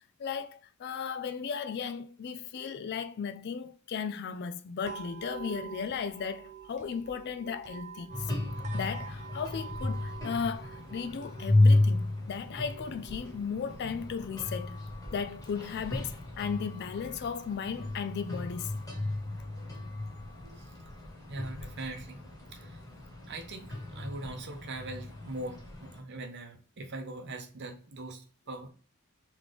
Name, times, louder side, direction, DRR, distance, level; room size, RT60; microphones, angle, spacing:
voice 1, 0.2-8.1 8.7-14.7 15.1-18.7, left 6 dB, 50° left, 0.3 m, -36 dB
sound 1, 4.8-18.8, right 7 dB, 30° right, 0.4 m, -49 dB
sound 2, 8.1-26.0, left 2 dB, 15° left, 1.2 m, -33 dB
voice 2, 21.3-22.2 22.5-22.8 23.3-28.7, right 2 dB, 50° right, 0.8 m, -41 dB
3.8 x 3.2 x 3.3 m
head